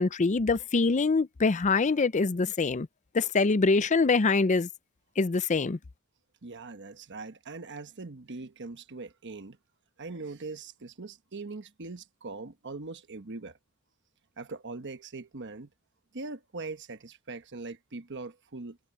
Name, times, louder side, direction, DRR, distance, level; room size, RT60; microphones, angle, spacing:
voice 1, 0.0-2.9 3.1-4.7 5.2-5.8, left 4 dB, 35° left, 0.5 m, -24 dB
voice 2, 6.4-9.6 10.0-13.6 14.4-15.7 16.1-18.8, right 3 dB, 55° right, 1.1 m, -41 dB
head